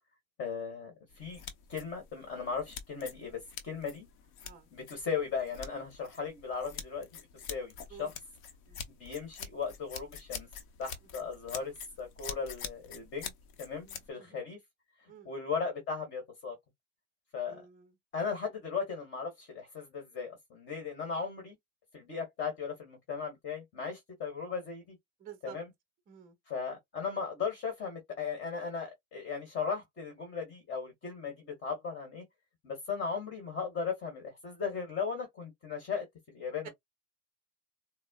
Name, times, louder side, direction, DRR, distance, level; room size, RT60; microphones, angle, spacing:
voice 1, 0.4-1.4 1.7-4.1 4.7-8.1 9.0-10.5 10.8-13.3 13.6-14.6 15.0-16.6 17.3-17.6 18.1-21.5 21.9-25.0 25.4-25.7 26.5-32.2 32.6-36.7, left 5 dB, 30° left, 1.4 m, -37 dB
sound 1, 1.1-14.1, left 7 dB, 55° left, 0.8 m, -46 dB
voice 2, 13.9-14.4 15.1-15.3 17.5-17.9 25.2-25.6 26.1-26.4 36.6-36.7, right 8 dB, 20° right, 0.6 m, -50 dB
4.1 x 2.1 x 2.3 m
supercardioid pair, 150°, 39 cm